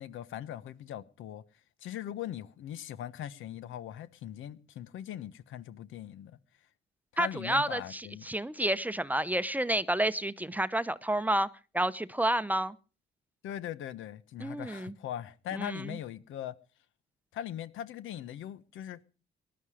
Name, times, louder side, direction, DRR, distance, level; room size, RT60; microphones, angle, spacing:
voice 1, 0.0-1.4 1.8-6.4 7.1-8.2 13.4-16.5 17.3-19.0, left 11 dB, 80° left, 1.1 m, -40 dB
voice 2, 7.2-11.5 11.7-12.8 14.4-15.0 15.5-16.0, right 1 dB, 10° right, 0.8 m, -30 dB
19.0 x 12.0 x 5.0 m
cardioid pair, 90°, 20 cm